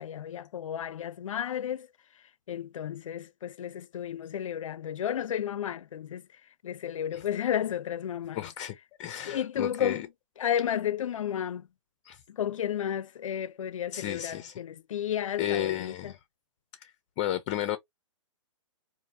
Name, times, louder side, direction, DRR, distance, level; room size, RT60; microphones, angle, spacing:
voice 1, 0.0-1.9 2.5-6.2 6.6-8.5 9.2-10.0 10.4-11.7 12.3-16.1, left 9 dB, 85° left, 0.4 m, -32 dB
voice 2, 8.3-10.1 12.0-12.2 13.9-14.6 15.4-16.2 16.8-16.9 17.2-17.8, left 12 dB, 30° left, 0.5 m, -33 dB
3.9 x 2.5 x 2.6 m
hypercardioid pair, 145°, 16 cm